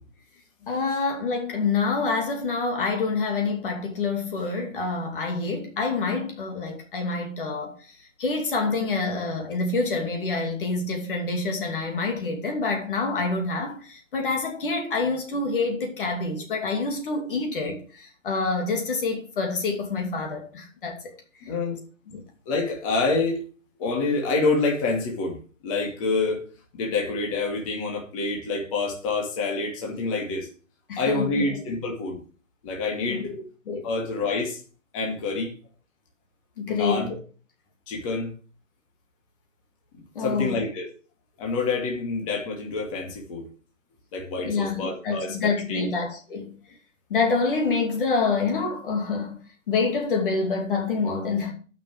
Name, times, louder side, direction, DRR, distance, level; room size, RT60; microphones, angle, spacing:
voice 1, 0.6-21.1 21.4-21.5 22.1-22.2 30.9-31.4 33.0-33.9 36.6-37.1 40.1-40.6 44.4-46.5 47.1-51.5, left 4 dB, 45° left, 2.6 m, -27 dB
voice 2, 21.5-21.8 22.5-23.4 23.8-25.4 25.6-26.5 26.7-30.5 31.0-32.2 32.6-33.3 33.8-34.6 34.9-35.5 36.6-37.2 37.9-38.3 39.9-40.9 41.4-43.4 44.1-45.3 45.7-45.9, left 3 dB, 25° left, 2.5 m, -27 dB
9.2 x 6.2 x 7.9 m
hypercardioid pair, 160°, 38 cm